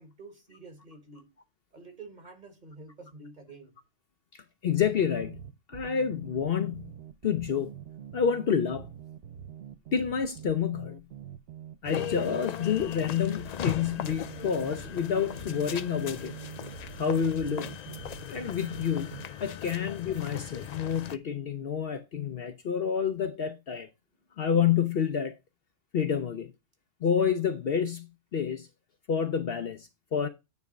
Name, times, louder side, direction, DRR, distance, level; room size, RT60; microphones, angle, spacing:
voice 1, 0.0-1.3 1.7-3.8 24.2-24.5, right 3 dB, 35° right, 1.5 m, -49 dB
voice 2, 4.3-6.9 7.2-7.7 8.1-8.9 9.9-11.1 11.8-16.4 17.0-17.8 18.3-23.9 24.4-25.4 25.9-26.5 27.0-28.7 29.1-30.3, left 7 dB, 55° left, 0.8 m, -29 dB
sound 1, 4.8-19.3, right 9 dB, 60° right, 1.0 m, -44 dB
sound 2, 11.8-21.2, left 9 dB, 75° left, 0.3 m, -39 dB
9.4 x 3.5 x 5.1 m
omnidirectional pair, 1.3 m